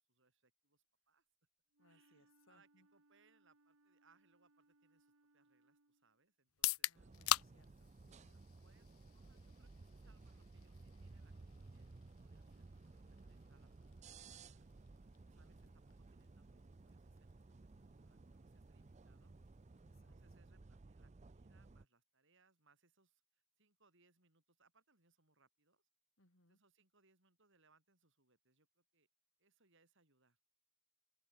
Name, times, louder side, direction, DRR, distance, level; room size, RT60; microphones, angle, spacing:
voice 1, 0.1-1.3 1.9-6.9 8.5-11.3 11.7-12.8 13.1-14.7 15.2-17.5 17.8-19.3 19.9-25.9 26.5-29.1 29.4-30.4, right 4 dB, 60° right, 7.5 m, -76 dB
Wind instrument woodwind instrument, 1.7-6.2, right 2 dB, 80° right, 3.4 m, -74 dB
voice 2, 1.8-2.9 6.8-8.4 15.4-15.8 19.8-20.2 26.2-26.6, left 2 dB, 60° left, 4.8 m, -74 dB
sound 1, 6.5-20.3, left 12 dB, 80° left, 1.1 m, -46 dB
sound 2, 6.9-21.8, right 3 dB, 30° right, 0.5 m, -58 dB
open air
head